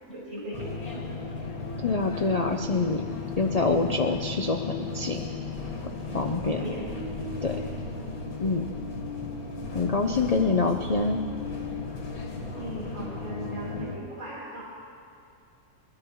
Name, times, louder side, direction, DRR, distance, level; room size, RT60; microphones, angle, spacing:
voice 1, 0.1-1.0 6.2-6.9 7.6-7.8 12.5-14.6, equal, 65° right, -9 dB, 4.3 m, -38 dB
sound 1, 0.5-14.0, left 3 dB, 85° left, 2.1 m, -35 dB
voice 2, 1.8-3.0 3.4-5.3 6.1-6.6 7.4-7.6 8.4-8.7 9.7-11.2, left 3 dB, 50° left, 4 dB, 0.4 m, -26 dB
22.5 x 13.5 x 3.1 m, 2.6 s
omnidirectional pair, 1.5 m